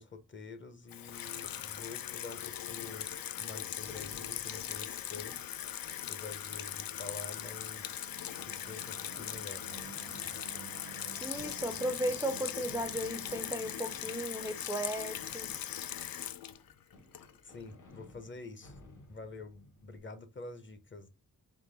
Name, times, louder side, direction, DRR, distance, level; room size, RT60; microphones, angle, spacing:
voice 1, 0.0-5.4 6.1-9.6 17.4-18.8 19.1-21.1, left 3 dB, 35° left, 0.6 m, -47 dB
Water tap faucet / Sink (filling or washing), 0.9-17.6, left 11 dB, 85° left, 0.5 m, -40 dB
Fireworks, 3.8-20.0, left 1 dB, 65° left, 1.2 m, -58 dB
sound 1, 6.8-15.5, right 9 dB, 75° right, 0.5 m, -53 dB
voice 2, 11.2-15.5, right 1 dB, 10° right, 0.4 m, -36 dB
3.8 x 3.2 x 3.8 m
wide cardioid pair, 145°, 34 cm